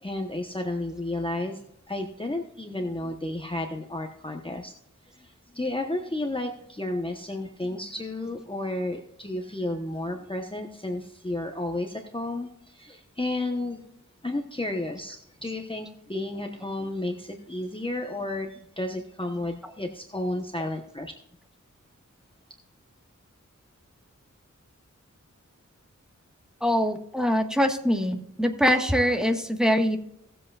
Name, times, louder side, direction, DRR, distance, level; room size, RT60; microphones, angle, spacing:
voice 1, 0.0-4.7 5.1-13.8 14.2-21.1, left 2 dB, 15° left, 3 dB, 1.0 m, -32 dB
voice 2, 26.6-30.0, equal, ahead, 4 dB, 1.4 m, -23 dB
18.0 x 7.8 x 2.4 m, 0.77 s
wide cardioid pair, 45°, 31 cm